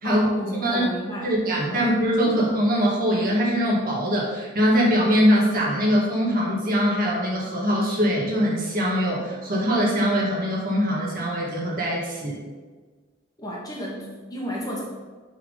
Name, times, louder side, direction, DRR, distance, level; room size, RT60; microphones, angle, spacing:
voice 1, 0.0-1.3 1.7-1.9 2.2-2.4 13.4-14.8, equal, 20° left, -3 dB, 1.2 m, -32 dB
voice 2, 1.2-12.4, equal, 45° right, -4 dB, 1.8 m, -22 dB
7.2 x 3.8 x 5.5 m, 1.4 s
head